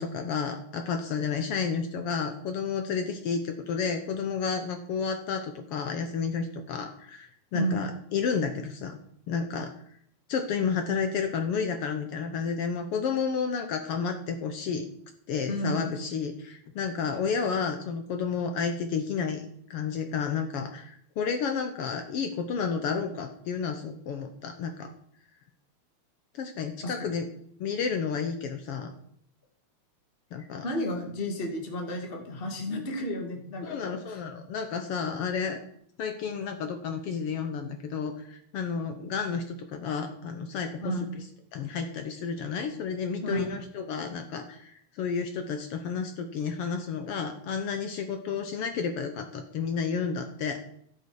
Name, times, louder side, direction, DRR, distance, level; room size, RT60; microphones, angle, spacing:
voice 1, 0.0-9.0 9.3-9.7 10.3-14.9 15.3-24.9 26.3-27.3 27.6-28.9 30.3-30.7 33.6-35.6 36.0-40.9 41.5-50.6, left 6 dB, 65° left, 7 dB, 1.5 m, -31 dB
voice 2, 15.5-16.0 26.8-27.1 30.6-34.2 40.8-41.0 43.2-43.4, equal, 20° left, 1 dB, 1.9 m, -32 dB
16.5 x 6.9 x 4.8 m, 0.68 s
omnidirectional pair, 3.4 m